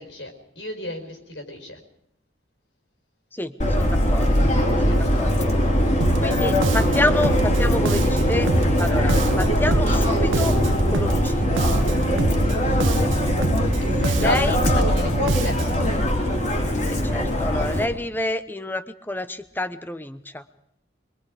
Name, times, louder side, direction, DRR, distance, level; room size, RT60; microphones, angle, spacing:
voice 1, 0.0-1.8 4.9-5.0 13.8-15.9, left 1 dB, 70° left, 4 dB, 4.7 m, -32 dB
voice 2, 3.3-4.5 4.8-5.5 6.2-8.5 8.8-10.5 10.9-11.7 14.1-14.6 16.9-20.4, left 1 dB, 10° left, 11 dB, 0.9 m, -28 dB
Subway metro underground, 3.6-17.8, equal, 35° left, 3.2 m, -21 dB
Bass guitar, 6.0-15.9, right 3 dB, 80° right, 0.7 m, -26 dB
25.5 x 22.5 x 5.0 m, 0.72 s
head